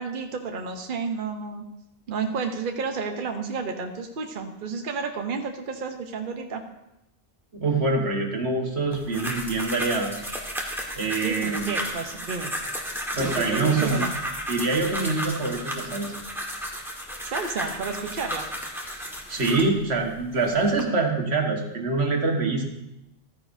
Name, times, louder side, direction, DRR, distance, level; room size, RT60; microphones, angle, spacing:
voice 1, 0.0-1.7 2.1-6.7 11.2-12.5 13.2-14.1 17.2-18.5, right 5 dB, 55° right, 5 dB, 0.9 m, -31 dB
voice 2, 7.5-10.1 11.0-11.6 13.1-14.1 14.5-16.1 19.3-22.6, right 3 dB, 85° right, 1 dB, 1.7 m, -25 dB
sound 1, 8.9-19.7 20.3-20.8, equal, ahead, 1.3 m, -33 dB
14.0 x 9.7 x 2.6 m, 0.89 s
omnidirectional pair, 1.1 m